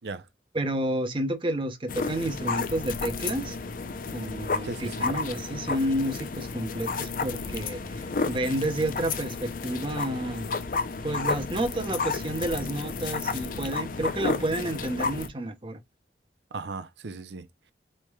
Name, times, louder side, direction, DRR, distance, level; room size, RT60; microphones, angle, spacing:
voice 1, 0.5-3.6 4.1-10.4 11.0-15.8, right 1 dB, 30° right, 0.8 m, -30 dB
sound 1, 1.9-15.3, left 4 dB, 50° left, 0.5 m, -32 dB
voice 2, 4.6-5.1 16.5-17.7, right 3 dB, 70° right, 0.6 m, -37 dB
4.3 x 3.2 x 2.3 m
head